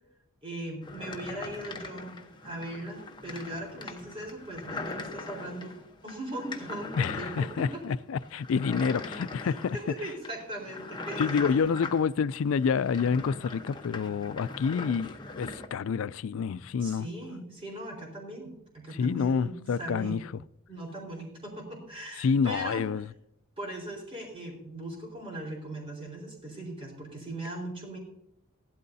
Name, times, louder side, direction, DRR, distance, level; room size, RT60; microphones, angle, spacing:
voice 1, 0.4-5.8 6.0-7.8 9.4-11.5 16.8-20.2 20.7-22.9 23.6-28.0, right 1 dB, 25° right, 4.3 m, -39 dB
sound 1, 0.8-15.7, left 3 dB, 20° left, 1.0 m, -41 dB
voice 2, 7.0-9.8 11.2-17.1 19.0-20.2 22.2-23.1, left 6 dB, 70° left, 0.3 m, -28 dB
16.5 x 12.5 x 2.7 m
head